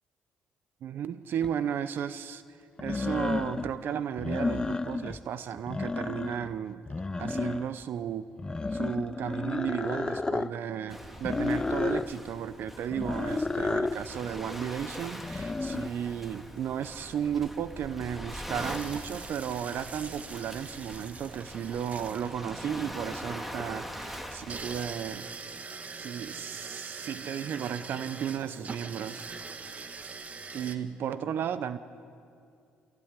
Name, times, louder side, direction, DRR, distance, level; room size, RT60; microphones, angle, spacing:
voice 1, 0.8-2.4 2.8-6.8 7.2-8.3 8.7-25.3 26.0-29.3 30.5-31.8, right 8 dB, 65° right, 13 dB, 0.8 m, -34 dB
sound 1, 1.4-1.5 2.8-3.7 4.1-5.2 5.6-6.5 6.9-7.8 8.4-10.5 11.2-12.1 12.9-14.0 15.2-15.9, left 3 dB, 20° left, 0.7 m, -31 dB
Waves surf, 10.9-24.9, equal, 5° right, 2.4 m, -42 dB
sound 2, 18.5-30.8, right 4 dB, 40° right, 1.5 m, -43 dB
24.0 x 16.0 x 9.8 m, 2.4 s
cardioid pair, 90°, 4 cm